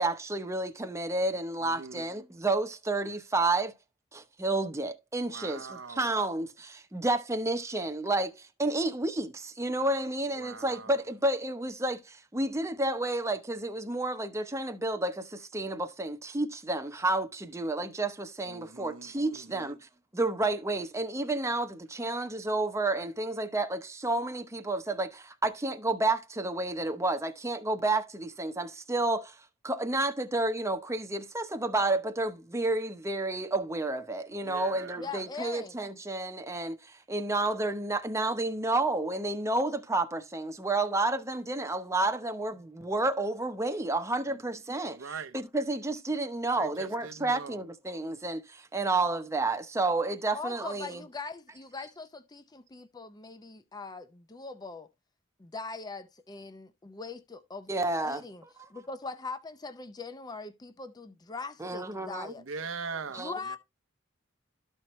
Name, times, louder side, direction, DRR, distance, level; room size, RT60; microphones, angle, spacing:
voice 1, 0.0-3.7 4.1-19.8 20.1-29.4 29.6-45.0 45.3-51.0 57.7-58.7 61.6-62.3 63.1-63.3, right 2 dB, 15° right, 0.8 m, -30 dB
voice 2, 1.6-2.1 5.2-6.1 10.3-11.0 18.5-19.7 34.4-35.1 44.3-44.4 44.9-45.4 46.5-47.6 62.4-63.6, right 5 dB, 75° right, 0.8 m, -42 dB
voice 3, 35.0-35.8 50.3-54.9 55.4-57.7 58.0-58.4 58.7-62.4 63.2-63.6, left 4 dB, 20° left, 0.5 m, -41 dB
13.0 x 4.5 x 3.0 m
head